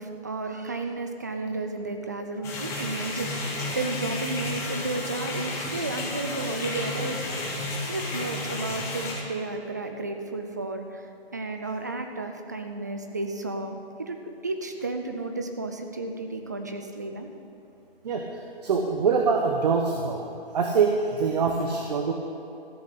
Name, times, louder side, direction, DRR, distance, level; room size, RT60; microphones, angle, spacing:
voice 1, 0.0-7.4 7.9-17.3, right 3 dB, 20° right, 5 dB, 0.4 m, -33 dB
sound 1, 2.4-9.1, left 2 dB, 10° left, 1.1 m, -32 dB
voice 2, 18.6-20.2 20.5-22.1, right 5 dB, 40° right, 2 dB, 1.0 m, -24 dB
14.0 x 6.5 x 8.4 m, 2.7 s
hypercardioid pair, 155°, 31 cm